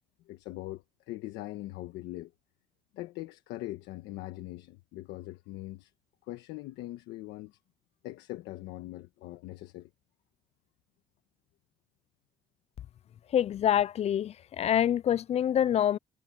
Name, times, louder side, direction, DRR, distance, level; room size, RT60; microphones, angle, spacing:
voice 1, 0.3-2.3 2.9-5.9 6.3-7.6 8.0-9.9, left 17 dB, 90° left, 1.3 m, -41 dB
voice 2, 13.3-16.0, left 10 dB, 40° left, 0.3 m, -26 dB
cardioid pair, 110°, 17 cm